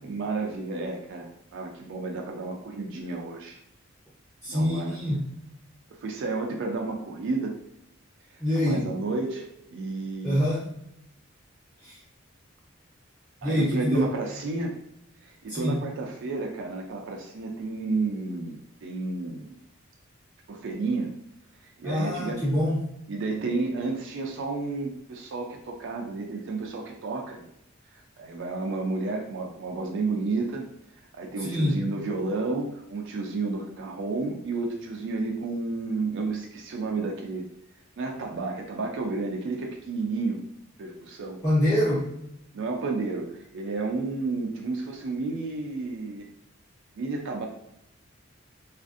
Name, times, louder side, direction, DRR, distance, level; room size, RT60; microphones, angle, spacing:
voice 1, 0.0-3.6 4.5-5.0 6.0-7.5 8.6-10.4 13.4-14.8 15.3-19.6 20.5-21.1 21.8-22.4 23.1-27.5 28.2-30.7 31.1-37.5 38.0-40.4 40.8-41.4 42.5-46.3 47.0-47.5, right 3 dB, 60° right, 2 dB, 0.4 m, -31 dB
voice 2, 4.4-5.2 8.4-8.8 10.2-10.6 11.8-12.0 13.4-14.1 15.5-15.8 21.8-22.9 31.4-31.8 41.4-42.1, equal, 15° left, -9 dB, 0.7 m, -25 dB
2.5 x 2.4 x 2.4 m, 0.77 s
head